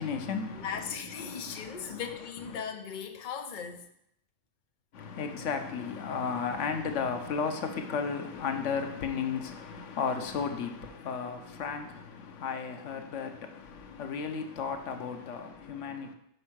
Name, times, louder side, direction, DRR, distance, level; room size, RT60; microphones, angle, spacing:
voice 1, 0.0-0.7 1.3-2.0 4.9-16.1, left 6 dB, 80° left, 1.1 m, -34 dB
voice 2, 0.5-3.9, left 7 dB, 45° left, 0.8 m, -38 dB
5.4 x 5.4 x 6.0 m
omnidirectional pair, 1.3 m